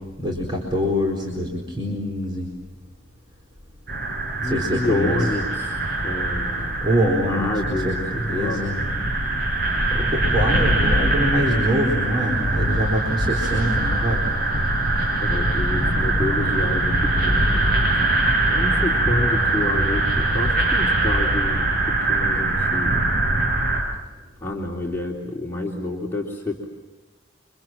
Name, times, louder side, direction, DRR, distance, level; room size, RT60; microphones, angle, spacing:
voice 1, 0.2-2.5 4.4-5.2 6.8-8.8 9.9-14.2, equal, 25° right, -2 dB, 4.2 m, -24 dB
sound 1, 3.9-23.8, right 2 dB, 50° right, 8.0 m, -22 dB
voice 2, 4.4-6.8 7.3-8.6 15.2-18.0 18.5-23.0 24.4-26.7, left 2 dB, 10° left, -3 dB, 3.3 m, -29 dB
29.0 x 25.5 x 7.6 m, 1.2 s
head